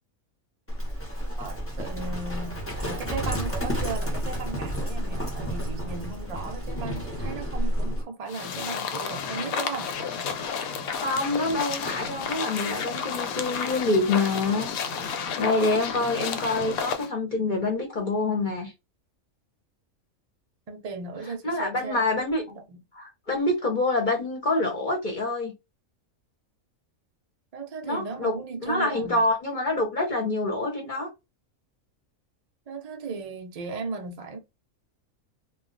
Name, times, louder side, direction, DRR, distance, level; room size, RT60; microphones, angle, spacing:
Livestock farm animals working animals, 0.7-8.0, equal, 20° left, 0.4 m, -30 dB
voice 1, 1.2-10.0 20.7-22.1 22.5-22.8 27.5-29.2 32.7-34.4, right 4 dB, 60° right, 0.4 m, -36 dB
sound 1, 8.3-17.1, left 6 dB, 85° left, 1.0 m, -31 dB
voice 2, 11.0-14.7 15.1-18.7 21.4-22.4 23.0-25.5 27.8-28.3 28.6-31.1, left 2 dB, 45° left, 0.7 m, -26 dB
2.3 x 2.2 x 3.7 m
omnidirectional pair, 1.5 m